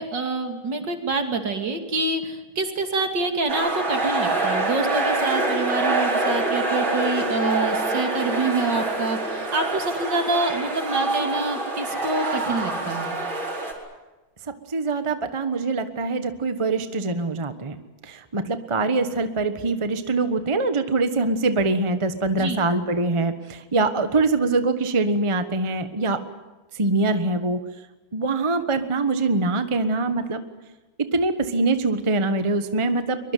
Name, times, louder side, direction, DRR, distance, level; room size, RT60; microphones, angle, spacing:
voice 1, 0.0-13.2 22.4-22.6, right 3 dB, 65° right, 5 dB, 3.3 m, -26 dB
sound 1, 3.5-13.7, right 2 dB, 85° right, 5.5 m, -25 dB
voice 2, 14.7-17.8 18.0-26.2 26.7-27.6 28.1-30.4 31.1-33.2, right 3 dB, 20° right, 9 dB, 1.1 m, -23 dB
23.5 x 22.5 x 9.3 m, 1.1 s
omnidirectional pair, 2.1 m